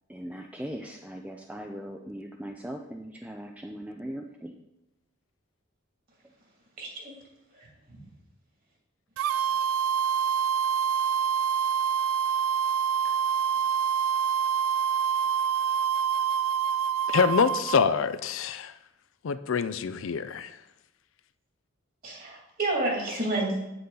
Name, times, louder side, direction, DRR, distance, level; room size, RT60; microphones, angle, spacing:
voice 1, 0.1-4.5, equal, 5° right, 0.4 m, -39 dB
voice 2, 6.8-7.1 7.5-8.1 22.0-23.6, right 2 dB, 45° right, 2.5 m, -30 dB
sound 1, 9.2-17.8, right 8 dB, 90° right, 0.3 m, -26 dB
voice 3, 17.1-18.7 19.2-20.5, left 5 dB, 70° left, 0.4 m, -25 dB
8.2 x 7.7 x 3.9 m
head